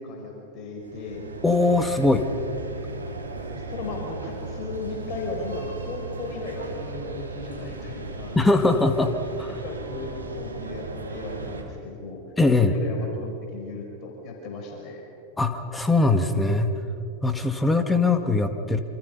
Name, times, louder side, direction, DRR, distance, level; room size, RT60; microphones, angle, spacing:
voice 1, 0.0-1.3 3.5-8.4 9.6-12.2 12.6-15.0, left 3 dB, 35° left, 1 dB, 4.9 m, -36 dB
sound 1, 0.8-11.6, right 3 dB, 75° right, 2.8 m, -36 dB
voice 2, 1.4-2.3 8.4-9.1 12.4-12.8 15.4-16.7 17.2-18.8, left 2 dB, 10° left, 7 dB, 1.8 m, -21 dB
27.5 x 26.5 x 5.5 m, 2.7 s
figure-of-eight pair, 90°, 0 cm